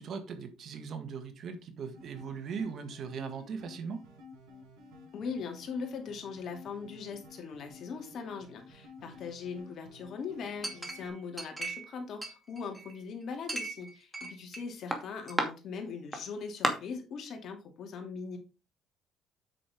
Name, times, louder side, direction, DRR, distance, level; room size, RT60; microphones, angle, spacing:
voice 1, 0.0-4.0, right 6 dB, 60° right, 1.6 m, -39 dB
sound 1, 1.9-11.1, left 3 dB, 80° right, 4.4 m, -53 dB
voice 2, 5.1-18.4, left 5 dB, 60° left, 2.3 m, -40 dB
Chink clink, 10.6-11.9 12.2-13.0 13.5-14.6 14.9-15.5 16.1-16.2 16.6-16.7, right 2 dB, 15° right, 2.3 m, -34 dB
8.4 x 6.4 x 3.6 m
supercardioid pair, 75°, 0 cm